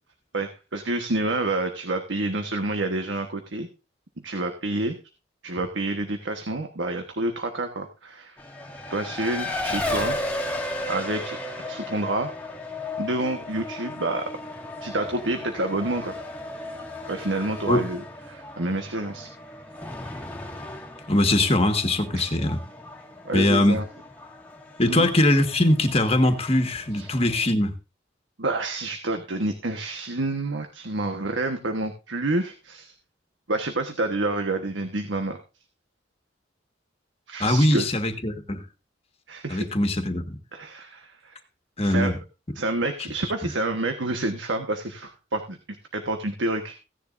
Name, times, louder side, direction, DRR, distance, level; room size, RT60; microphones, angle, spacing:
voice 1, 0.3-3.7 4.2-5.0 5.4-8.4 8.9-10.2 10.9-11.4 11.6-12.3 13.0-14.3 14.8-16.2 17.1-19.3 22.1-22.3 23.2-23.8 24.9-25.1 26.9-27.1 28.4-32.9 33.5-35.4 37.3-37.9 39.3-39.7 40.5-41.4 41.8-42.1 42.5-45.6 45.9-46.8, right 2 dB, 80° right, 1.3 m, -28 dB
Race car auto racing, 8.4-27.5, left 2 dB, 10° left, 1.9 m, -35 dB
voice 2, 21.1-22.6 23.3-23.8 24.8-27.7 37.4-38.6 39.5-40.3 41.8-42.2, left 1 dB, 30° left, 1.6 m, -21 dB
16.0 x 10.5 x 2.6 m
head